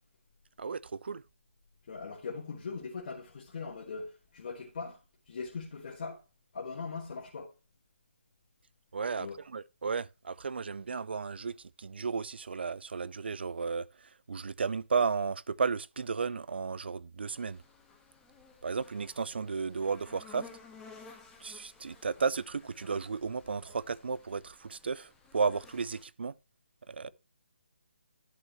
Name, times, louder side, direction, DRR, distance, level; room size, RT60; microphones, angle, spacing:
voice 1, 0.6-1.2 8.9-13.9 14.3-17.6 18.6-20.5 21.4-26.3 26.9-27.1, right 5 dB, 55° right, 0.5 m, -34 dB
voice 2, 1.9-5.0 5.3-6.2 6.5-7.5 9.2-9.4, left 4 dB, 45° left, 1.8 m, -40 dB
sound 1, 17.3-26.0, left 4 dB, 5° left, 1.5 m, -55 dB
11.0 x 7.0 x 3.0 m
figure-of-eight pair, 145°, 7 cm